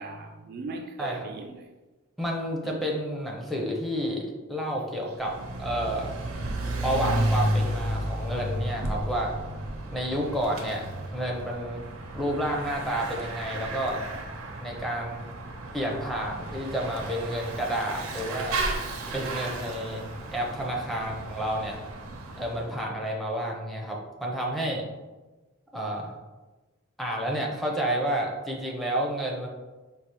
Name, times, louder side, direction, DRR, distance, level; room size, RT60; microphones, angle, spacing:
voice 1, 0.0-1.7 2.6-2.9 4.7-4.8, right 3 dB, 50° right, 0.3 m, -39 dB
voice 2, 2.2-6.2 6.8-9.3 9.9-11.9 12.1-14.0 14.6-15.3 15.7-18.6 19.1-21.8 22.4-24.9 25.7-26.2 27.0-29.5, right 1 dB, ahead, 0.5 m, -30 dB
Bicycle / Mechanisms, 5.1-22.7, right 1 dB, 85° right, 0.6 m, -33 dB
4.7 x 2.4 x 2.9 m
head